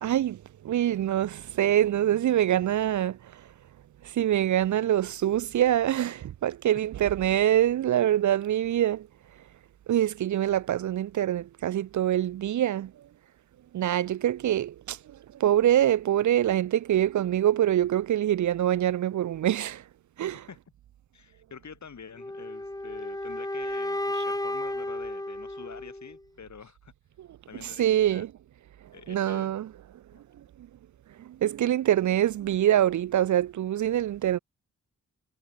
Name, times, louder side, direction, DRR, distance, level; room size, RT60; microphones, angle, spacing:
voice 1, 0.0-3.4 4.0-9.1 9.9-12.9 13.7-15.0 15.4-19.8 20.2-20.4 27.2-27.3 27.6-28.3 29.1-29.7 31.3-34.4, right 11 dB, 60° right, 0.5 m, -25 dB
voice 2, 21.1-26.9 27.5-28.2 28.9-29.5 30.1-30.2, left 6 dB, 60° left, 4.3 m, -46 dB
sound 1, 22.2-26.2, left 1 dB, 10° left, 1.9 m, -33 dB
cardioid pair, 55°, 33 cm